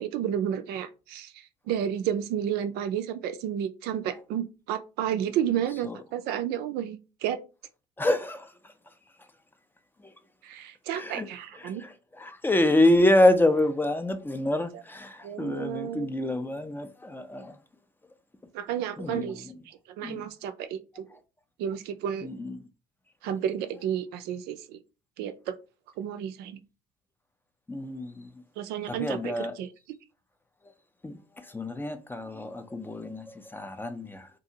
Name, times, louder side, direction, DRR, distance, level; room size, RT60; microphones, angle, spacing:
voice 1, 0.0-1.3 1.7-7.4 10.4-11.8 15.2-16.1 18.5-21.1 21.6-22.3 23.2-24.8 25.2-25.6 26.0-26.6 28.6-29.7, right 9 dB, 65° right, 0.4 m, -31 dB
voice 2, 8.0-8.5 10.9-11.3 11.6-17.6 19.0-19.5 20.0-20.3 22.2-22.6 27.7-28.3 28.9-29.5 31.0-34.3, left 1 dB, 10° left, 0.5 m, -27 dB
2.7 x 2.5 x 2.7 m
hypercardioid pair, 70°, 18 cm